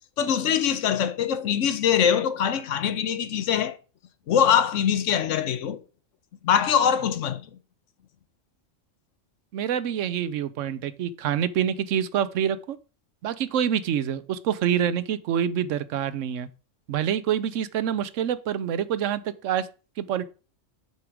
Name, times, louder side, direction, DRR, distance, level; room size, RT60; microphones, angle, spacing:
voice 1, 0.2-3.8 4.3-5.8 6.4-7.5, left 8 dB, 80° left, 1.1 m, -23 dB
voice 2, 9.5-12.8 13.2-16.5 16.9-19.7 20.0-20.2, right 9 dB, 80° right, 1.0 m, -26 dB
6.9 x 4.7 x 5.0 m
omnidirectional pair, 1.3 m